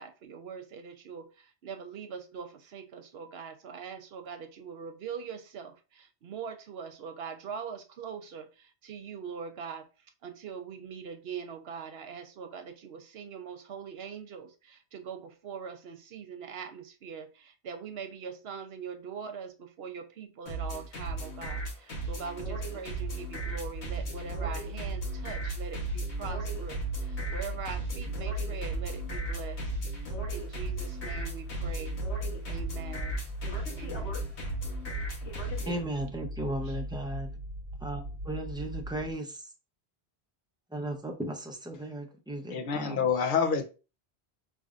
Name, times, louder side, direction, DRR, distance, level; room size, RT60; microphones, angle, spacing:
voice 1, 0.0-9.9 10.2-32.0 32.5-33.3 33.8-34.2 36.6-36.8, right 6 dB, 70° right, 0.9 m, -42 dB
sound 1, 20.5-35.8, right 2 dB, 90° left, 1.4 m, -36 dB
sound 2, 22.8-39.1, equal, 45° right, 1.0 m, -39 dB
voice 2, 35.6-37.4 37.8-39.5 40.7-43.1, right 1 dB, 5° right, 0.6 m, -36 dB
voice 3, 42.5-43.7, left 6 dB, 55° left, 0.8 m, -27 dB
5.2 x 3.3 x 2.4 m
omnidirectional pair, 1.1 m